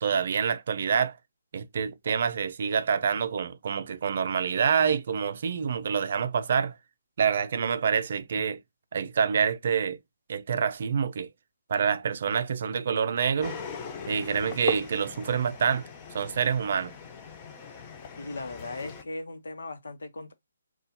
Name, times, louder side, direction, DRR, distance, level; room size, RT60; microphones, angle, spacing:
voice 1, 0.0-1.2 1.5-6.8 7.2-8.6 8.9-10.0 10.3-11.3 11.7-13.6 14.1-15.8 16.1-16.9, right 6 dB, 40° right, 0.5 m, -27 dB
sound 1, 13.4-19.0, left 5 dB, 15° left, 0.5 m, -40 dB
voice 2, 18.2-20.3, left 2 dB, 80° left, 0.9 m, -38 dB
4.1 x 2.3 x 2.6 m
hypercardioid pair, 170°, 0 cm